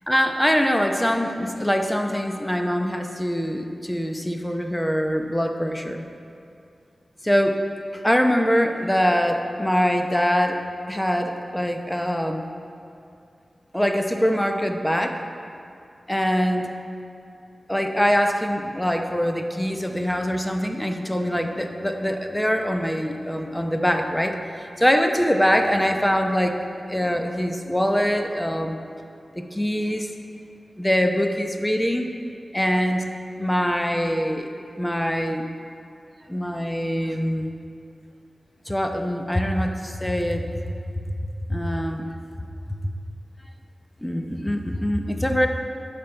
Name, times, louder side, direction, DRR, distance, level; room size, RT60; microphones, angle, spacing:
voice 1, 0.1-6.1 7.2-7.6 7.9-12.4 13.7-15.2 16.1-16.7 17.7-28.8 29.3-30.1 30.8-32.1 32.5-33.0 33.4-34.5 34.8-35.4 36.3-37.5 38.7-40.6 41.5-42.1 44.0-45.5, equal, 10° left, 5 dB, 0.8 m, -23 dB
12.5 x 5.3 x 4.5 m, 2.5 s
cardioid pair, 40°, 0 cm